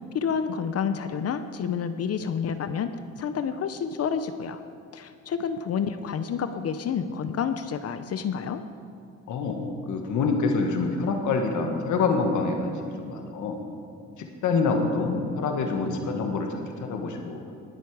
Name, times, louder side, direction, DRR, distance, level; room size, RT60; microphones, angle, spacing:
voice 1, 0.1-4.6 4.9-8.6, left 7 dB, 55° left, 10 dB, 0.7 m, -29 dB
voice 2, 9.3-13.6 14.2-17.4, left 4 dB, 80° left, 3 dB, 1.5 m, -26 dB
19.0 x 8.2 x 4.8 m, 2.5 s
cardioid pair, 90°, 30 cm